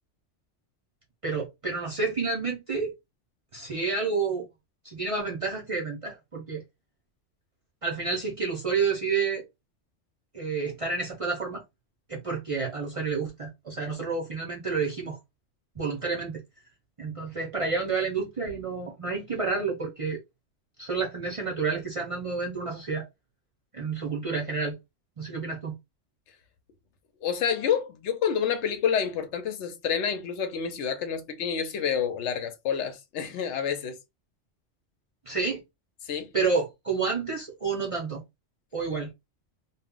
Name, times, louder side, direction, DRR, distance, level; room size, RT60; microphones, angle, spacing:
voice 1, 1.2-2.9 3.5-4.5 4.8-6.6 7.8-9.4 10.3-11.6 12.1-15.2 15.8-16.4 17.0-20.2 20.8-23.1 23.7-24.8 25.2-25.8 35.3-35.6 36.3-38.2 38.7-39.1, right 4 dB, 40° right, 0.5 m, -29 dB
voice 2, 27.2-34.0 36.0-36.3, left 7 dB, 75° left, 0.9 m, -28 dB
2.2 x 2.0 x 3.6 m
omnidirectional pair, 1.2 m